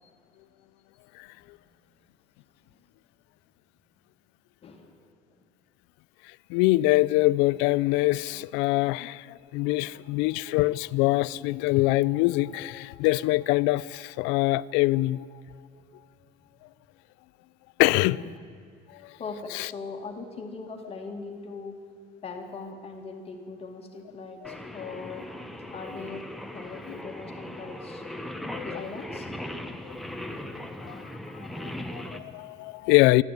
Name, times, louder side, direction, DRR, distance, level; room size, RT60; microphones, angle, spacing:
voice 1, 4.6-5.4 17.8-18.3 19.2-21.8 22.2-25.3 25.7-28.0 28.6-29.3, left 4 dB, 35° left, 2.3 m, -40 dB
voice 2, 6.5-15.3 17.8-18.2 19.0-19.1 19.5-19.7 24.4-24.6 26.9-27.0 28.5-28.9 29.8-29.9 30.8-31.1 31.5-33.2, left 19 dB, 85° left, 0.5 m, -24 dB
Singing, 24.4-32.2, left 1 dB, ahead, 1.2 m, -38 dB
29.5 x 12.5 x 9.3 m
cardioid pair, 135°, 18 cm